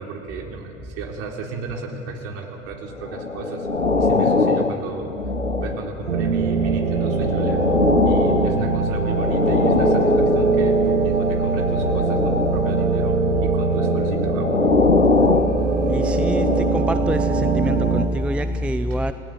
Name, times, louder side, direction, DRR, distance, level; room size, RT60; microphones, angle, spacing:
voice 1, 0.0-3.7 4.0-5.2 5.6-7.7 8.1-14.6, right 4 dB, 40° right, 2 dB, 3.6 m, -34 dB
sound 1, 3.0-6.1 6.8-11.0 11.7-12.9 13.7-17.0 17.7-17.9, left 3 dB, 85° left, 1.1 m, -22 dB
sound 2, 6.1-18.1, right 4 dB, 80° right, 2.0 m, -22 dB
voice 2, 15.9-16.5 16.7-19.1, equal, 5° right, 11 dB, 0.5 m, -24 dB
29.5 x 17.0 x 9.0 m, 2.9 s
figure-of-eight pair, 85°, 36 cm